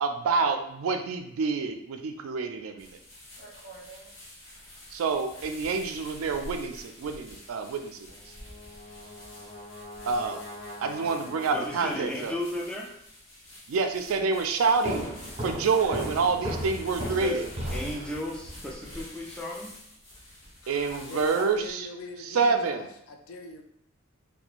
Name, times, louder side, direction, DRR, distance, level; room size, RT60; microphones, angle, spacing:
voice 1, 0.0-2.9 4.9-8.0 10.1-10.4 10.8-12.3 13.7-15.1 15.4-17.5 20.7-21.9 22.3-22.8, right 4 dB, 85° right, 6 dB, 0.3 m, -27 dB
sound 1, 2.8-21.7, equal, 65° left, 0.9 m, -47 dB
Brass instrument, 8.1-12.3, left 1 dB, 30° left, 0.8 m, -44 dB
voice 2, 11.5-12.9 17.0-17.4 17.7-19.7, left 1 dB, 5° left, -3 dB, 0.4 m, -34 dB
sound 2, 14.8-18.5, equal, 30° right, 0.9 m, -35 dB
voice 3, 20.6-23.6, left 2 dB, 85° left, 4 dB, 0.4 m, -42 dB
2.9 x 2.1 x 2.4 m, 0.75 s
head